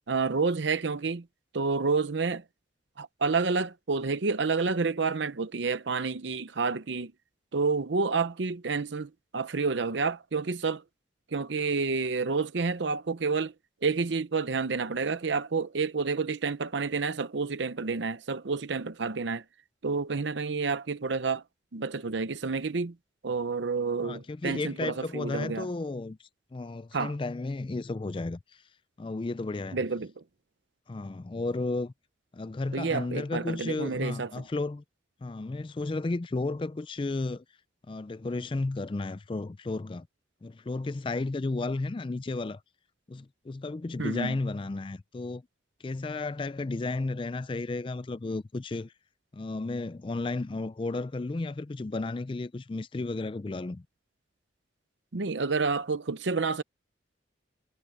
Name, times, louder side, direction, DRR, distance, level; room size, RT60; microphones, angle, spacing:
voice 1, 0.1-1.2 1.5-2.4 3.0-7.1 7.5-10.8 11.3-13.5 13.8-19.4 19.8-21.4 21.7-22.9 23.2-25.7 26.9-27.1 29.7-30.1 32.7-34.3 44.0-44.4 55.1-56.6, right 4 dB, 70° right, 0.7 m, -29 dB
voice 2, 24.0-28.6 29.0-29.8 30.9-31.9 32.3-34.8 35.2-37.4 37.9-40.1 40.4-42.6 43.1-45.4 45.8-48.9 49.3-53.8, left 3 dB, 25° left, 0.4 m, -33 dB
head